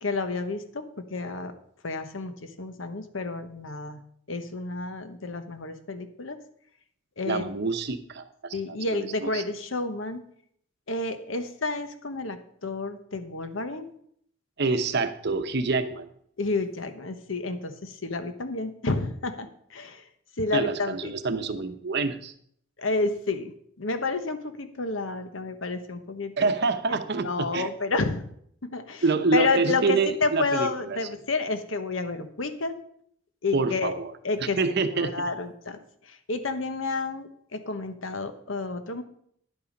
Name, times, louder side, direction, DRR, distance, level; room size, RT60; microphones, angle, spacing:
voice 1, 0.0-0.8 1.1-1.5 1.8-4.0 4.3-6.4 7.2-7.4 8.5-10.2 10.9-13.9 16.4-20.0 20.4-21.1 22.8-23.5 23.8-26.5 26.9-28.2 28.6-29.0 29.3-32.7 33.4-33.9 34.2-34.6 34.9-35.8 36.0-39.0, left 3 dB, 75° left, 9 dB, 1.1 m, -30 dB
voice 2, 7.2-9.4 14.6-16.1 20.5-22.3 26.4-27.7 29.0-31.0 33.5-34.1 34.6-35.1, right 4 dB, 60° right, 9 dB, 0.9 m, -27 dB
10.5 x 8.5 x 5.2 m, 0.68 s
head